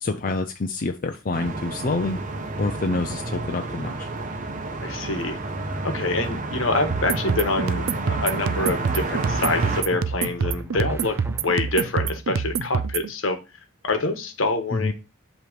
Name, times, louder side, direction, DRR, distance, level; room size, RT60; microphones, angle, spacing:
voice 1, 0.0-2.2 2.6-4.1 14.7-14.9, left 3 dB, 45° left, 5 dB, 0.5 m, -27 dB
sound 1, 1.3-9.8, right 2 dB, 40° right, 0.9 m, -30 dB
voice 2, 4.8-5.4 5.8-13.4 13.8-14.9, left 2 dB, 75° left, 7 dB, 1.2 m, -26 dB
sound 2, 6.9-13.1, right 6 dB, 80° right, 0.4 m, -26 dB
sound 3, 9.2-11.9, right 1 dB, 15° right, 0.5 m, -38 dB
7.8 x 3.1 x 5.0 m, 0.29 s
head